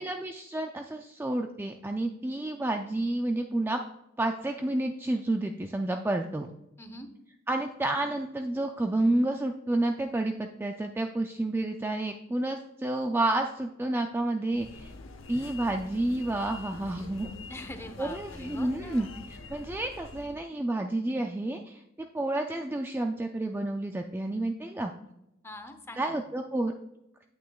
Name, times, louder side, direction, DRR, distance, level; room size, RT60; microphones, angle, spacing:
voice 1, 0.0-3.8 4.2-6.5 7.5-14.9 15.3-17.3 18.0-24.9 26.0-26.7, right 2 dB, 10° right, 4 dB, 0.3 m, -30 dB
voice 2, 6.8-7.1 17.5-19.1 25.4-26.2, left 1 dB, 10° left, 6 dB, 0.7 m, -43 dB
sound 1, 14.5-20.4, left 3 dB, 70° left, 0.8 m, -45 dB
9.1 x 8.4 x 2.3 m, 0.88 s
head